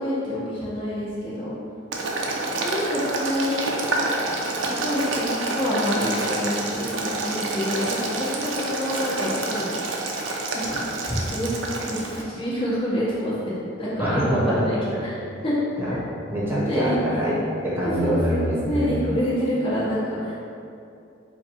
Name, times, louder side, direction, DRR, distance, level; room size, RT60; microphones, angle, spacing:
voice 1, 0.0-1.5 2.6-3.7 4.6-9.7 10.5-13.5 13.8-14.2 14.5-14.8 15.4-15.5 16.7-17.0 17.8-20.3, equal, 30° left, -10 dB, 1.5 m, -27 dB
Boiling, 1.9-12.2, right 2 dB, 75° right, 0.6 m, -28 dB
voice 2, 14.0-15.1 15.8-16.0 16.3-17.3 17.6-19.0, right 1 dB, 10° right, -8 dB, 1.1 m, -24 dB
4.7 x 2.3 x 4.6 m, 2.5 s
head